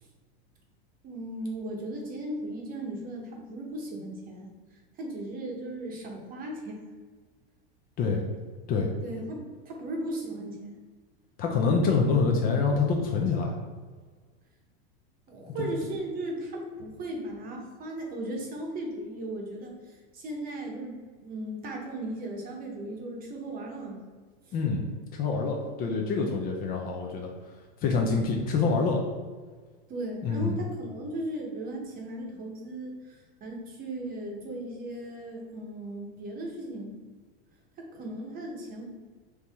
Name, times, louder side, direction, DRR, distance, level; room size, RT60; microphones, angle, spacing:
voice 1, 1.0-6.8 9.0-10.7 15.3-20.9 21.2-24.0 24.4-24.5 29.9-37.0 37.8-38.9, right 1 dB, 30° right, 0 dB, 0.9 m, -37 dB
voice 2, 11.4-13.6 15.6-15.7 24.5-24.8 25.1-27.3 27.8-29.0 30.2-30.6, left 4 dB, 30° left, 1 dB, 0.5 m, -26 dB
4.6 x 2.8 x 3.4 m, 1.5 s
supercardioid pair, 140°, 30 cm